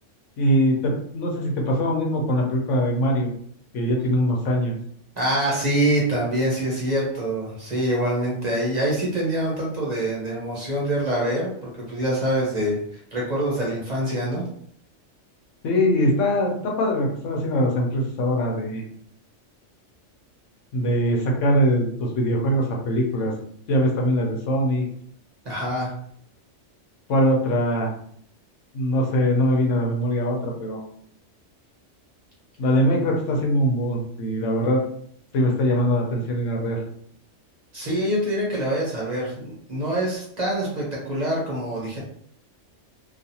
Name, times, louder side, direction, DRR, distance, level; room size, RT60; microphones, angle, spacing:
voice 1, 0.4-3.3 3.7-4.7 15.6-18.8 20.7-23.3 23.7-24.9 27.1-27.9 28.7-30.8 32.6-34.8 35.3-36.8, equal, 80° left, 0 dB, 1.0 m, -22 dB
voice 2, 5.2-12.8 13.1-14.4 25.4-25.9 37.7-42.0, right 1 dB, 40° right, -4 dB, 0.9 m, -25 dB
2.4 x 2.4 x 2.8 m, 0.64 s
omnidirectional pair, 1.3 m